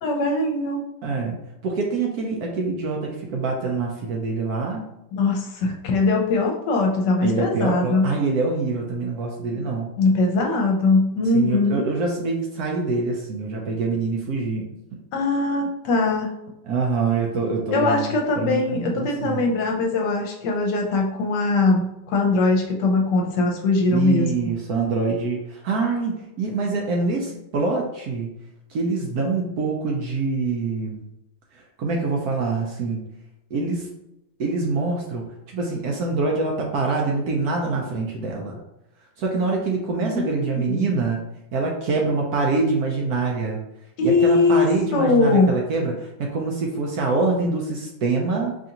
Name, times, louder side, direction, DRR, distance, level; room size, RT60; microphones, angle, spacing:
voice 1, 0.0-0.8 5.1-8.1 9.6-9.7 10.0-11.9 15.1-16.3 17.7-24.5 40.1-40.8 44.0-45.5, left 3 dB, 70° left, 1 dB, 1.2 m, -21 dB
voice 2, 1.0-4.9 7.2-9.9 11.3-14.7 16.6-18.1 18.4-19.4 23.9-28.3 28.7-31.0 31.5-33.0 33.5-33.9 34.4-38.6 39.2-41.2 41.5-43.6 44.0-48.6, right 3 dB, 70° right, 0 dB, 1.0 m, -25 dB
5.0 x 2.5 x 2.8 m, 0.87 s
omnidirectional pair, 2.0 m